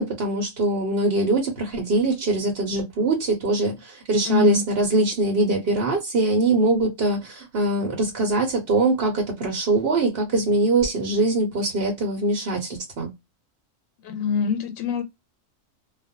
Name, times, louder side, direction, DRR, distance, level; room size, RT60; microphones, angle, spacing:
voice 1, 0.0-13.1, right 2 dB, 55° right, 0.9 m, -22 dB
voice 2, 4.2-4.6 14.0-15.0, left 6 dB, 85° left, 1.0 m, -24 dB
2.4 x 2.1 x 2.5 m
omnidirectional pair, 1.4 m